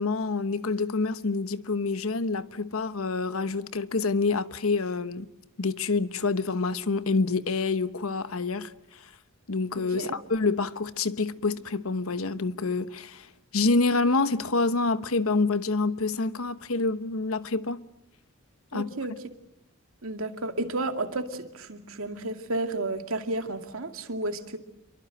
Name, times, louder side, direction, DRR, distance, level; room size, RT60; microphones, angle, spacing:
voice 1, 0.0-5.3 5.6-8.7 9.5-13.3 13.5-17.8 18.7-18.9, left 3 dB, 85° left, 1.1 m, -27 dB
voice 2, 18.7-19.1 20.0-24.6, right 2 dB, 80° right, 2.4 m, -32 dB
27.5 x 23.5 x 7.8 m
head